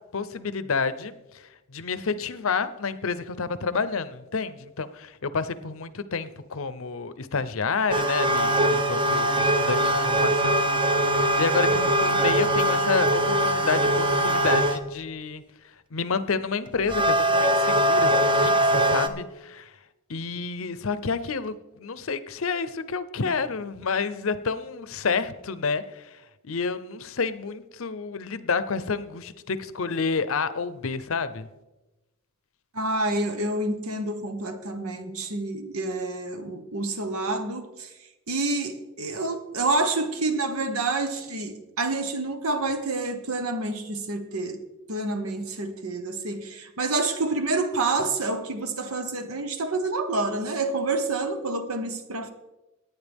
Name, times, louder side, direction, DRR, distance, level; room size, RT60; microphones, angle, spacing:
voice 1, 0.1-10.6 11.2-15.4 15.9-19.7 20.1-31.5, left 5 dB, 70° left, 0.7 m, -29 dB
sound 1, 7.9-14.8 16.7-19.1, right 1 dB, 20° right, 0.7 m, -22 dB
voice 2, 32.7-37.9 38.3-44.6 44.9-52.3, right 2 dB, 85° right, 1.2 m, -28 dB
18.0 x 9.7 x 3.6 m
head